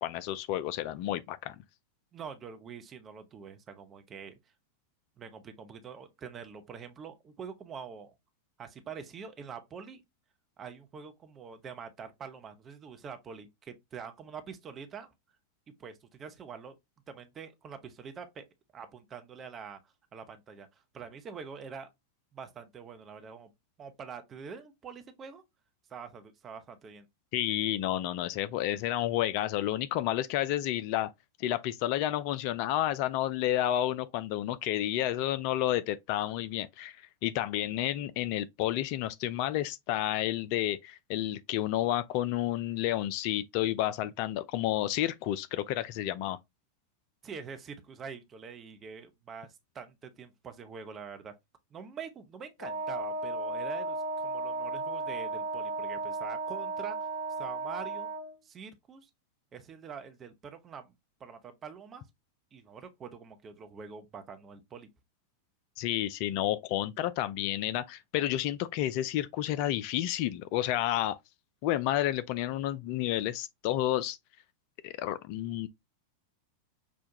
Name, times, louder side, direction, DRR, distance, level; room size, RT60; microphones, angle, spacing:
voice 1, 0.0-1.6 27.3-31.1 31.4-37.0 37.2-46.4 65.8-71.2 71.6-74.2 74.8-75.7, left 13 dB, 45° left, 0.3 m, -30 dB
voice 2, 2.1-4.3 5.2-8.1 8.6-10.0 10.6-15.1 15.8-16.8 17.1-18.5 18.7-19.8 20.1-20.7 20.9-21.9 22.3-23.5 23.8-25.4 25.9-27.1 47.2-51.3 51.7-57.0 57.4-58.1 58.4-59.1 59.5-60.9 61.2-62.1 62.5-64.9, right 6 dB, 25° right, 0.8 m, -45 dB
Wind instrument woodwind instrument, 52.6-58.3, right 3 dB, 75° left, 1.5 m, -35 dB
6.0 x 2.3 x 2.8 m
figure-of-eight pair, 90°, 0 cm